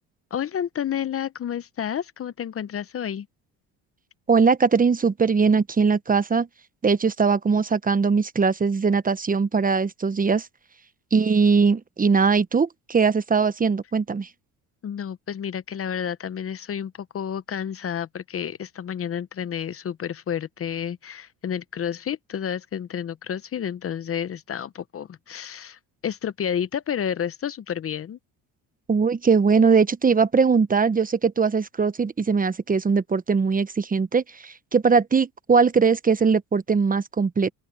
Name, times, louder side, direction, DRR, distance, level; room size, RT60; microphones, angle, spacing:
voice 1, 0.3-3.3 14.8-28.2, left 8 dB, 35° left, 0.9 m, -30 dB
voice 2, 4.3-6.5 6.8-10.5 11.1-14.3 28.9-37.5, right 5 dB, 20° right, 1.1 m, -20 dB
open air
supercardioid pair, 95°, 38 cm